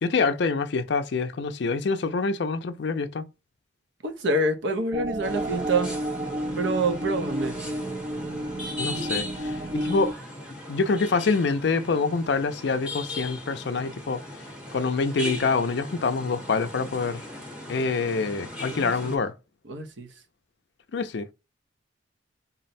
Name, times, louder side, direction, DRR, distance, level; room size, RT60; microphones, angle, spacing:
voice 1, 0.0-3.2 8.8-10.1 10.7-14.2 14.7-17.3 17.7-19.3 20.9-21.3, left 4 dB, 60° left, 0.4 m, -26 dB
voice 2, 4.0-5.9 6.6-7.6 18.7-19.1 19.7-20.1, right 2 dB, 65° right, 0.6 m, -27 dB
sound 1, 4.9-10.1, right 1 dB, 30° right, 0.4 m, -31 dB
sound 2, 5.2-19.2, left 1 dB, 5° right, 0.9 m, -38 dB
3.9 x 2.1 x 4.0 m
head